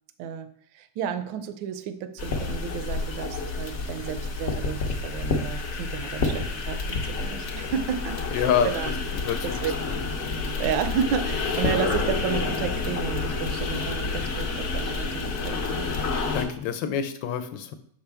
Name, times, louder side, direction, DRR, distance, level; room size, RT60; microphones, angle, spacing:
voice 1, 0.2-8.9 9.4-9.7 10.6-15.9, right 8 dB, 80° right, 10 dB, 1.3 m, -32 dB
sound 1, 2.2-16.5, left 3 dB, 55° left, 0.8 m, -29 dB
voice 2, 8.3-8.7 9.1-9.6 9.8-10.0 16.3-17.8, left 8 dB, 75° left, 9 dB, 1.2 m, -27 dB
6.3 x 5.7 x 3.4 m, 0.62 s
omnidirectional pair, 2.1 m